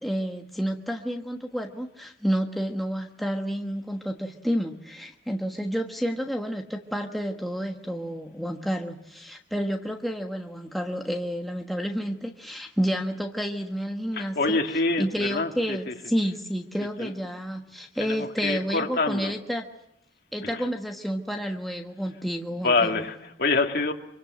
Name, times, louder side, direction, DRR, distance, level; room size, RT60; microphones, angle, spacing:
voice 1, 0.0-14.6 15.0-19.6 20.3-23.0, equal, ahead, 2 dB, 1.3 m, -30 dB
voice 2, 14.1-15.9 17.0-17.1 18.0-19.3 20.4-20.7 22.6-23.9, left 3 dB, 50° left, 4 dB, 2.4 m, -26 dB
25.5 x 23.5 x 7.9 m, 0.83 s
head